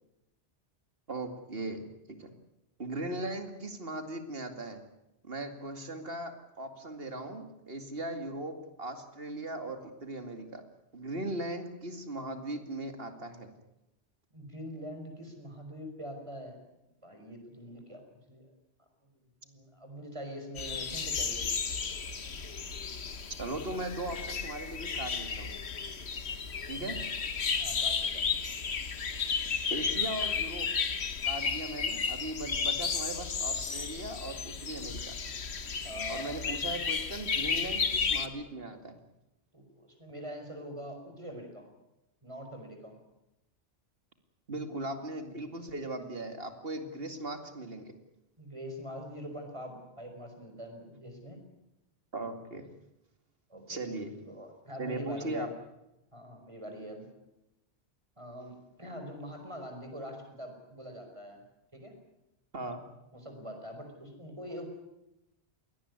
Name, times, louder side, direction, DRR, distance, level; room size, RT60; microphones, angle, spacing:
voice 1, 1.1-2.3 2.8-4.8 5.2-10.6 10.9-13.5 23.4-25.6 26.7-27.0 29.7-30.7 31.2-35.1 36.1-39.0 44.5-47.9 52.1-52.6 53.7-54.1 54.8-55.5 62.5-62.8, right 2 dB, 60° right, 7 dB, 2.7 m, -38 dB
voice 2, 14.3-16.6 17.0-18.5 19.0-19.1 19.4-21.5 27.6-28.4 35.8-36.5 39.5-41.7 42.2-43.0 48.4-51.4 53.5-53.8 54.2-55.5 56.1-57.1 58.2-61.4 61.7-62.0 63.1-64.7, equal, 25° right, 4 dB, 5.2 m, -44 dB
sound 1, 20.6-38.3, left 5 dB, 70° left, 1.6 m, -33 dB
21.5 x 18.0 x 9.7 m, 0.90 s
omnidirectional pair, 1.1 m